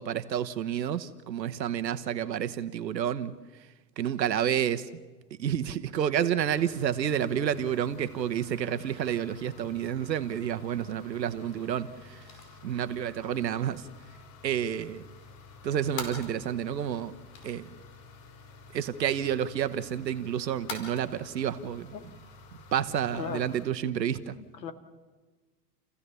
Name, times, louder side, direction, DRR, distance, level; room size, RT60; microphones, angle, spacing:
voice 1, 0.0-3.3 4.0-4.9 5.4-12.2 12.6-13.9 14.4-15.0 15.6-17.1 17.4-17.7 18.7-21.9 22.7-24.4, right 9 dB, 85° right, 1.2 m, -30 dB
sound 1, 6.4-23.7, left 3 dB, 45° left, 2.8 m, -51 dB
sound 2, 11.2-21.6, left 4 dB, 65° left, 5.1 m, -48 dB
voice 2, 23.1-23.5 24.3-24.7, left 7 dB, 80° left, 2.2 m, -37 dB
29.5 x 15.5 x 6.9 m
hypercardioid pair, 100°, 50 cm